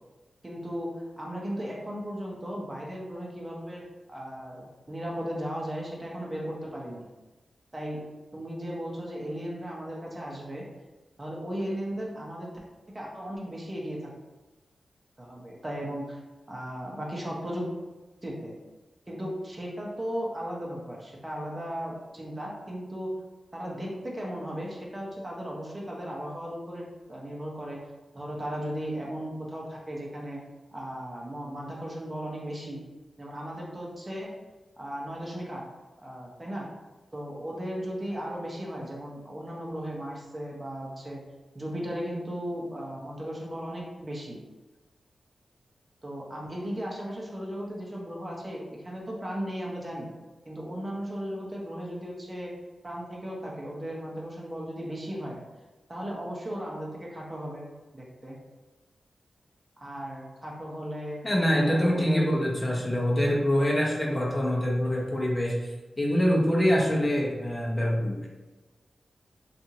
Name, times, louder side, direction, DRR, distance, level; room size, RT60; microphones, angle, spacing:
voice 1, 0.4-0.9 1.2-3.8 4.1-7.1 7.7-8.0 8.3-10.6 11.2-12.5 12.9-14.1 15.2-16.2 16.5-17.7 18.2-18.6 19.1-23.1 23.5-27.8 28.1-30.4 30.7-32.8 33.2-34.3 34.8-35.6 36.0-36.6 37.1-41.2 41.5-44.4 46.0-50.1 50.5-52.5 52.8-55.4 55.9-57.7 57.9-58.4 59.8-61.3 61.6-62.3 63.1-63.3, equal, 35° right, -3 dB, 0.8 m, -36 dB
voice 2, 61.2-65.6 66.0-68.3, equal, 25° left, -3 dB, 0.7 m, -25 dB
2.6 x 2.5 x 2.8 m, 1.2 s
cardioid pair, 40°, 0 cm